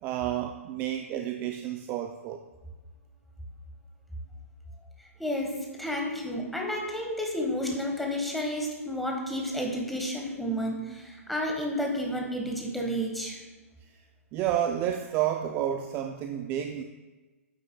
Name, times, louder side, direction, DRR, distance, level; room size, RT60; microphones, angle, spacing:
voice 1, 0.0-2.4 14.3-16.8, right 11 dB, 25° right, 5 dB, 0.4 m, -30 dB
voice 2, 5.2-13.4, equal, ahead, -1 dB, 1.4 m, -31 dB
8.8 x 8.3 x 2.3 m, 1.2 s
hypercardioid pair, 130°, 8 cm